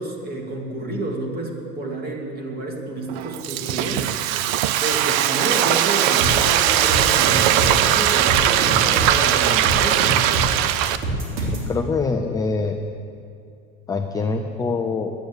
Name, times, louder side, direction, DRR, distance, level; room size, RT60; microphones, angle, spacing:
voice 1, 0.0-4.1 4.8-10.3, right 2 dB, 25° right, 0 dB, 2.3 m, -29 dB
Frying (food), 3.1-11.0, right 12 dB, 65° right, 0.7 m, -19 dB
sound 1, 6.2-11.7, right 2 dB, 85° right, 3.4 m, -26 dB
voice 2, 11.5-12.8 13.9-15.1, left 4 dB, 10° left, 3 dB, 0.4 m, -24 dB
11.5 x 9.4 x 8.8 m, 2.4 s
cardioid pair, 145°, 34 cm